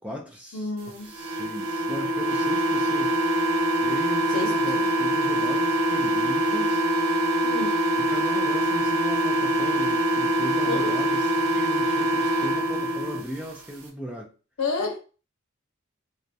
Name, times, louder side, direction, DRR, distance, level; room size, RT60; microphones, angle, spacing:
voice 1, 0.0-0.7 1.0-3.1 3.8-6.8 8.0-14.3, equal, 5° right, 0.3 m, -37 dB
voice 2, 0.5-1.1 4.3-4.9 7.4-7.8 10.7-10.9 14.6-15.0, left 3 dB, 80° left, 0.6 m, -30 dB
sound 1, 1.1-13.2, right 1 dB, 85° right, 0.6 m, -24 dB
2.2 x 2.1 x 2.6 m
head